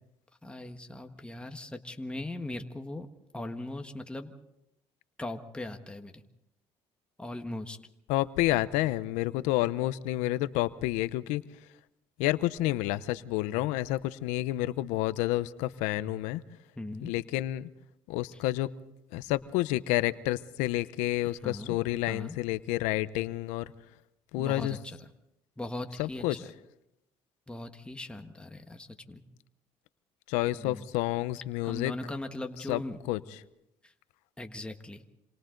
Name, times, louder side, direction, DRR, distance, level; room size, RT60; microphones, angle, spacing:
voice 1, 0.4-3.1 3.3-4.3 5.2-6.2 7.2-7.8 16.8-17.1 21.4-21.8 22.1-22.4 24.4-25.0 25.6-26.4 27.5-29.2 30.5-30.9 31.6-33.0 33.8-33.9 34.4-35.0, left 1 dB, 10° left, 5 dB, 1.6 m, -39 dB
voice 2, 8.1-11.4 12.2-16.4 17.0-17.7 18.1-18.7 19.1-23.7 24.3-24.8 26.0-26.4 30.3-31.9 32.7-33.4, left 16 dB, 90° left, 15 dB, 0.8 m, -29 dB
27.5 x 27.0 x 3.9 m, 0.85 s
supercardioid pair, 85°, 12 cm